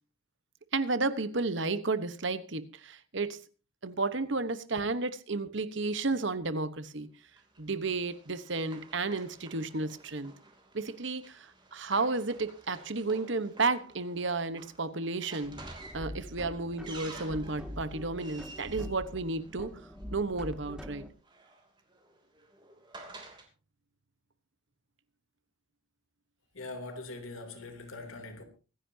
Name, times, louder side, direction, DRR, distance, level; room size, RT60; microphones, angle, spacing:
voice 1, 0.7-3.4 3.8-7.1 7.6-10.3 10.7-15.6 15.9-19.7 20.1-21.0, right 3 dB, 60° right, 1.1 m, -32 dB
Run, 7.4-20.0 21.0-23.5, right 3 dB, 20° right, 2.9 m, -52 dB
sound 1, 15.4-21.1, equal, 5° right, 1.4 m, -44 dB
voice 2, 26.5-28.4, left 2 dB, 90° left, 3.1 m, -42 dB
24.5 x 10.5 x 2.8 m
head